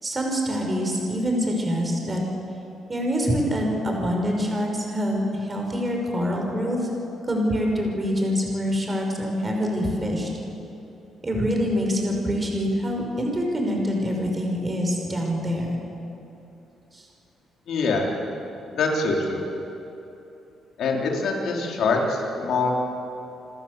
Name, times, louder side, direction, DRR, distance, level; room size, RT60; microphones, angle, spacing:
voice 1, 0.0-2.2 2.9-6.9 7.3-10.3 11.2-15.8 16.9-17.0, equal, 25° right, 1 dB, 5.6 m, -25 dB
voice 2, 17.7-18.1 18.7-19.4 20.8-22.7, left 3 dB, 70° left, 0 dB, 4.1 m, -24 dB
28.0 x 13.0 x 8.2 m, 2.9 s
cardioid pair, 90°, 0 cm